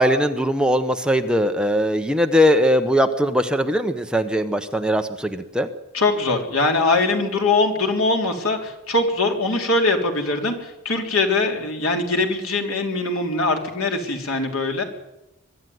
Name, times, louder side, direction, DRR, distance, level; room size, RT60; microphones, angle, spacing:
voice 1, 0.0-5.7, equal, 5° right, 6 dB, 1.0 m, -20 dB
voice 2, 5.9-14.8, left 3 dB, 85° left, 3 dB, 3.5 m, -22 dB
23.0 x 12.0 x 9.5 m, 0.95 s
head